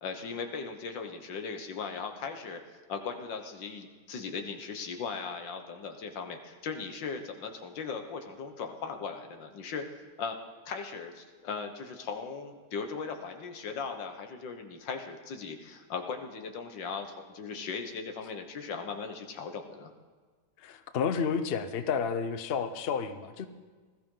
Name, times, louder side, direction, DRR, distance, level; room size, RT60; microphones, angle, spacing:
voice 1, 0.0-2.6 2.9-9.9 10.2-10.4 10.7-19.9, left 5 dB, 90° left, 6 dB, 1.9 m, -38 dB
voice 2, 20.6-23.5, left 6 dB, 50° left, 9 dB, 0.7 m, -31 dB
19.5 x 13.5 x 3.9 m, 1.5 s
omnidirectional pair, 1.9 m